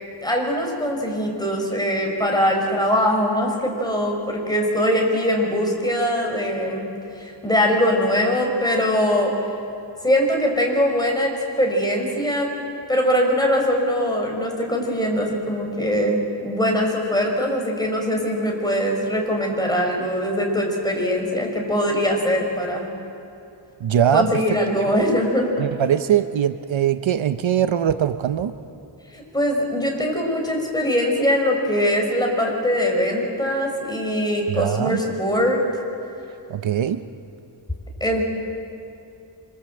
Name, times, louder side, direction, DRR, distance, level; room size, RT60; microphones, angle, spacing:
voice 1, 0.2-6.8 7.2-9.3 10.0-12.5 12.9-22.9 24.1-25.5 29.1-35.6 38.0-38.3, equal, 10° left, 0 dB, 5.8 m, -22 dB
voice 2, 23.8-24.4 25.6-28.5 34.5-35.0 36.5-37.1, right 9 dB, 75° right, 10 dB, 0.9 m, -21 dB
26.5 x 26.0 x 7.8 m, 2.8 s
wide cardioid pair, 130°, 47 cm